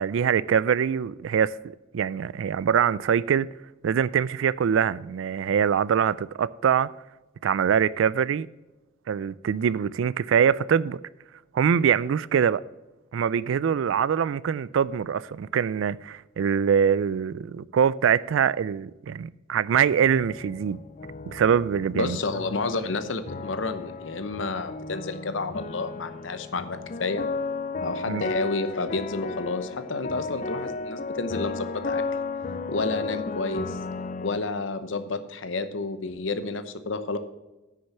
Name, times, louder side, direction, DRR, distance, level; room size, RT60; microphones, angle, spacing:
voice 1, 0.0-1.6 1.9-3.5 3.8-6.9 7.4-8.5 9.1-11.0 11.5-12.6 13.1-20.8 21.3-22.2 28.1-28.3, right 7 dB, 90° right, 0.3 m, -23 dB
sound 1, 19.9-34.4, left 3 dB, 40° left, 0.5 m, -34 dB
voice 2, 21.9-27.3 27.8-32.0 32.7-33.8 34.2-37.2, left 3 dB, 80° left, 0.9 m, -30 dB
9.8 x 6.3 x 5.9 m
head